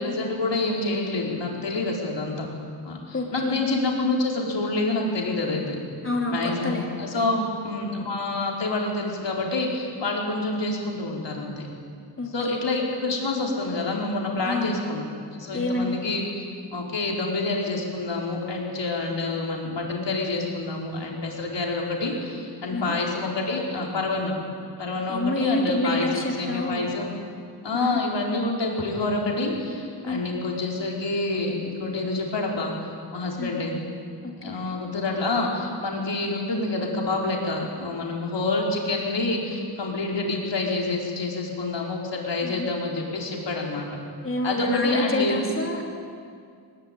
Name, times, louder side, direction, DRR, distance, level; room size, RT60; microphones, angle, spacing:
voice 1, 0.0-2.5 2.8-5.8 6.3-11.7 12.3-15.1 15.3-16.4 16.7-24.4 24.8-27.1 27.6-32.7 33.1-33.8 34.4-43.9 44.4-45.4, left 2 dB, 70° left, -1 dB, 4.6 m, -27 dB
voice 2, 3.1-3.6 6.0-6.9 7.1-7.5 12.2-12.6 14.4-14.9 15.5-16.0 22.7-22.9 25.1-26.9 27.7-28.0 30.0-30.2 33.4-33.6 34.2-34.6 42.4-42.7 44.2-45.9, left 2 dB, 30° left, 1 dB, 3.1 m, -28 dB
21.5 x 20.5 x 9.1 m, 2.2 s
wide cardioid pair, 155°, 45 cm